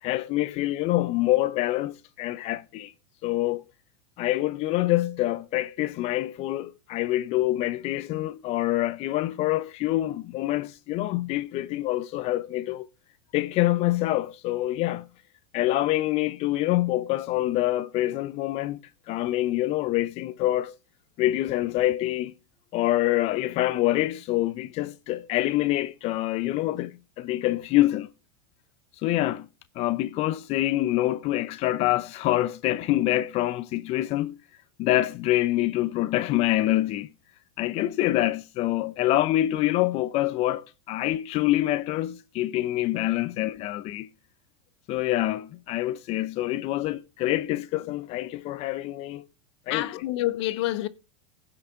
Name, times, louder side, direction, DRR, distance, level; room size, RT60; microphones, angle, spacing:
voice 1, 0.0-2.9 3.2-3.6 4.2-12.9 13.3-15.1 15.5-18.8 19.1-20.7 21.2-22.3 22.7-28.1 28.9-29.5 29.7-34.4 34.8-37.1 37.6-44.1 44.9-49.3 49.7-49.9, left 15 dB, 45° left, 0.6 m, -26 dB
voice 2, 49.7-50.9, left 16 dB, 65° left, 1.1 m, -28 dB
16.5 x 5.9 x 3.7 m
hypercardioid pair, 115°, 15 cm